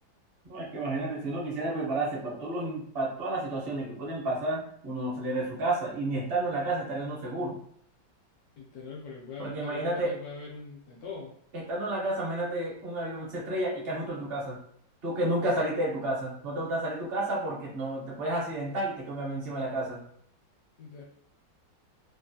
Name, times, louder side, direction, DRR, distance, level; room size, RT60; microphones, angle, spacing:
voice 1, 0.4-7.6 9.4-10.1 11.5-14.6 15.0-20.0, right 1 dB, 50° right, -4 dB, 0.7 m, -31 dB
voice 2, 8.6-11.3 20.8-21.0, left 4 dB, 75° left, -2 dB, 0.8 m, -42 dB
3.1 x 2.4 x 2.6 m, 0.65 s
omnidirectional pair, 2.1 m